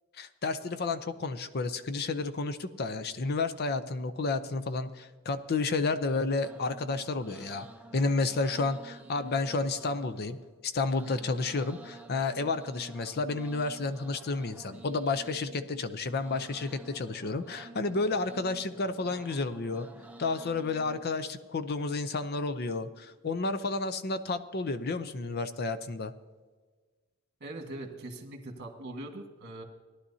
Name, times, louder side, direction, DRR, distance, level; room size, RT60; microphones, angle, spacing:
voice 1, 0.2-7.7 7.9-10.4 10.6-19.9 20.2-26.1, left 3 dB, 50° left, 11 dB, 0.6 m, -31 dB
sound 1, 6.4-21.2, right 2 dB, 5° right, 0.6 m, -50 dB
voice 2, 27.4-29.6, right 2 dB, 50° right, 3 dB, 1.6 m, -41 dB
18.0 x 11.5 x 2.8 m, 1.4 s
head